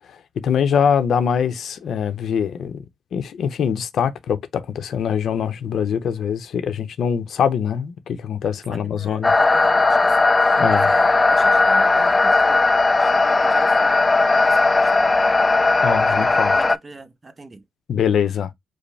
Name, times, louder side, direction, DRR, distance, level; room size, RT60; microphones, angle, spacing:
voice 1, 0.4-2.8 3.1-9.3 10.6-10.9 15.8-16.6 17.9-18.5, left 7 dB, 65° left, 0.7 m, -23 dB
voice 2, 8.7-12.6 13.0-15.6 16.0-17.6, right 2 dB, 25° right, 0.8 m, -42 dB
sound 1, 9.2-16.8, left 3 dB, 20° left, 0.3 m, -17 dB
5.2 x 2.1 x 3.3 m
cardioid pair, 90°, 0 cm